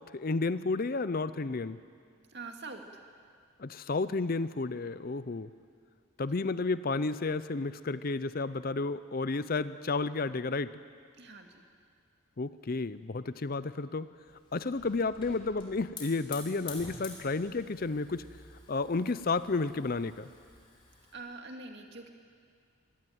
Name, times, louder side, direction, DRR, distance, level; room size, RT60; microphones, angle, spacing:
voice 1, 0.1-1.8 3.6-5.5 6.2-10.7 12.4-14.1 14.5-18.3 18.7-20.3, left 3 dB, 40° left, 14 dB, 0.5 m, -32 dB
voice 2, 2.3-2.8 11.2-11.6 21.1-22.1, right 3 dB, 50° right, 3 dB, 2.4 m, -44 dB
Hiss / Fire, 14.3-21.1, left 4 dB, 25° left, 3.8 m, -49 dB
24.0 x 18.0 x 9.4 m, 2.1 s
head